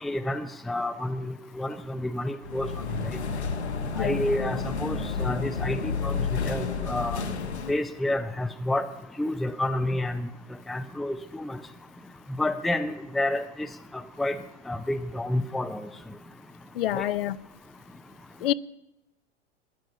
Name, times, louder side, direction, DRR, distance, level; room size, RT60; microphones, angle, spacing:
voice 1, 0.0-2.7 3.1-3.2 4.0-7.2 7.7-8.8 9.2-10.3 10.7-11.6 12.4-13.7 14.2-14.4 14.7-15.9 16.9-17.0, left 1 dB, ahead, 0.4 m, -29 dB
sound 1, 2.4-7.7, left 4 dB, 75° left, 1.3 m, -30 dB
voice 2, 16.8-17.4 18.4-18.5, left 13 dB, 55° left, 0.5 m, -27 dB
14.5 x 10.0 x 7.3 m
figure-of-eight pair, 85°, 34 cm